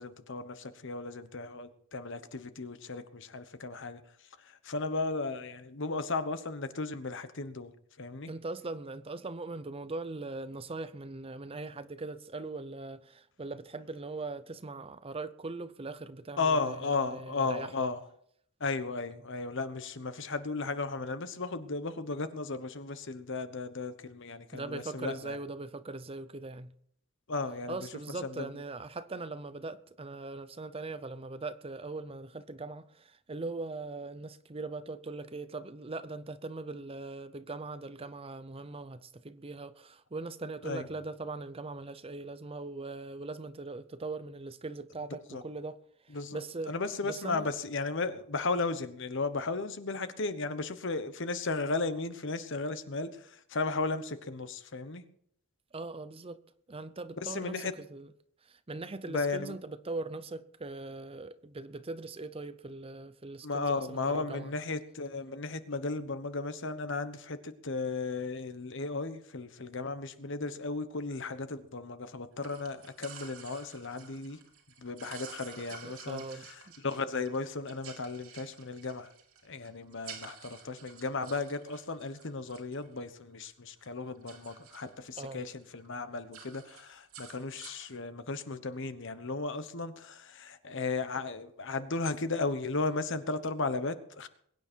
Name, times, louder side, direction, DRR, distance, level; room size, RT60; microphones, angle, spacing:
voice 1, 0.0-7.7 8.0-8.3 16.4-18.0 18.6-25.4 27.3-27.9 28.2-28.5 40.6-40.8 45.3-45.4 46.1-55.0 57.2-57.7 59.0-59.6 63.4-74.4 74.8-79.1 79.4-94.3, left 3 dB, 60° left, 1.2 m, -35 dB
voice 2, 8.3-17.7 24.5-26.7 27.7-45.8 46.0-46.7 47.0-47.5 55.7-56.4 56.7-58.1 58.4-64.5 75.8-76.5 85.2-85.4, right 3 dB, 25° right, 0.6 m, -40 dB
sound 1, 72.4-83.5 83.8-85.3 85.6-85.9 86.1-88.0, right 6 dB, 80° right, 3.5 m, -51 dB
22.0 x 9.6 x 4.5 m
head